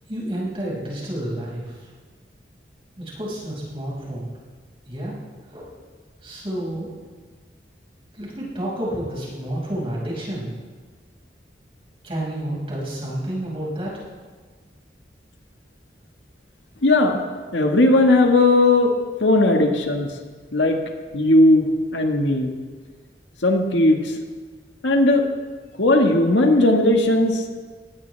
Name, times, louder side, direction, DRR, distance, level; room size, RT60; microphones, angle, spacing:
voice 1, 0.1-1.7 3.0-4.3 4.9-5.1 5.5-5.7 6.2-6.9 8.1-10.5 12.0-14.0, right 1 dB, 30° right, -5 dB, 5.6 m, -30 dB
voice 2, 16.8-17.2 17.5-18.9 19.2-20.1 20.5-20.8 21.1-22.5 23.4-24.1 24.8-25.3 25.8-27.5, left 2 dB, 90° left, 3 dB, 1.7 m, -17 dB
19.5 x 16.5 x 3.4 m, 1.5 s
head